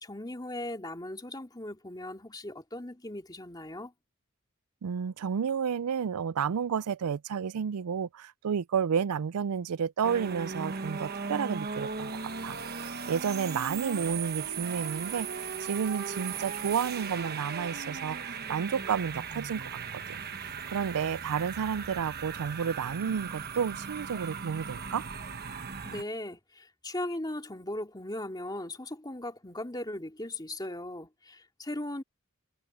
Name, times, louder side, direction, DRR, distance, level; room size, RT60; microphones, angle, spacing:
voice 1, 0.0-3.9 25.8-32.0, left 1 dB, 20° left, 2.7 m, -38 dB
voice 2, 4.8-25.0, right 7 dB, 90° right, 0.4 m, -31 dB
sound 1, 10.0-26.0, right 6 dB, 45° right, 1.2 m, -37 dB
head